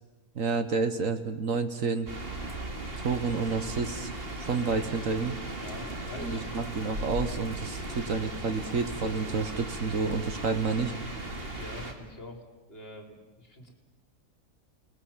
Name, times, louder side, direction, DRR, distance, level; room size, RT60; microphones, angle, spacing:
voice 1, 0.3-2.1 3.0-4.1 4.4-5.4 6.2-10.9, right 4 dB, 60° right, 9 dB, 1.6 m, -29 dB
sound 1, 2.1-11.9, right 1 dB, 40° right, 2.5 m, -37 dB
voice 2, 5.6-6.6 11.5-13.7, left 1 dB, 40° left, 3 dB, 3.7 m, -45 dB
29.5 x 20.0 x 7.3 m, 1.1 s
omnidirectional pair, 1.6 m